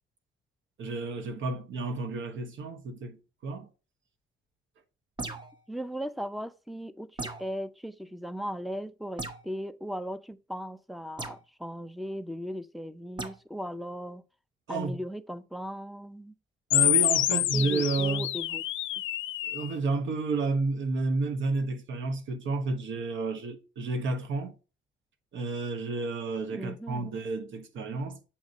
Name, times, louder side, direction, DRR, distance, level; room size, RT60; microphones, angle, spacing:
voice 1, 0.8-3.2 3.4-3.7 14.7-15.0 16.7-18.3 19.5-24.5 25.3-28.2, right 3 dB, 75° right, 1.0 m, -31 dB
sound 1, 5.2-5.6 7.2-7.6 9.2-9.5 11.2-11.4 13.2-13.4, right 3 dB, 20° right, 0.8 m, -37 dB
voice 2, 5.7-14.2 14.7-16.3 17.3-18.6 26.5-27.1, equal, ahead, 0.4 m, -37 dB
sound 2, 16.7-19.7, left 14 dB, 80° left, 0.4 m, -27 dB
7.2 x 2.6 x 5.0 m
cardioid pair, 90°, 20 cm